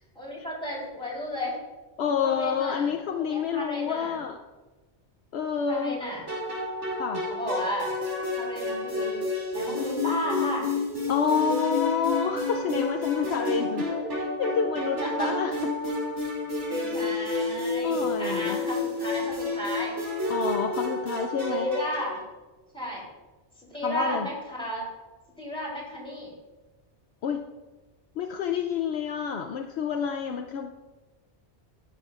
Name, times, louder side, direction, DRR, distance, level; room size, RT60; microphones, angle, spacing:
voice 1, 0.1-1.6 2.2-2.9 3.2-4.2 5.7-6.2 7.3-7.9 8.3-9.2 9.5-10.7 13.9-14.1 15.0-15.3 16.7-19.9 21.3-22.2 22.7-23.1 23.7-24.9 25.4-26.3, equal, 5° left, -5 dB, 3.4 m, -33 dB
voice 2, 2.0-4.4 5.3-6.0 7.0-7.2 11.1-13.9 14.2-15.7 17.8-18.6 20.3-21.7 23.8-24.3 27.2-27.4 28.2-30.7, left 7 dB, 70° left, 5 dB, 0.8 m, -28 dB
sound 1, 6.3-22.2, left 2 dB, 85° right, 3.0 m, -30 dB
15.5 x 6.9 x 2.4 m, 1.2 s
omnidirectional pair, 1.2 m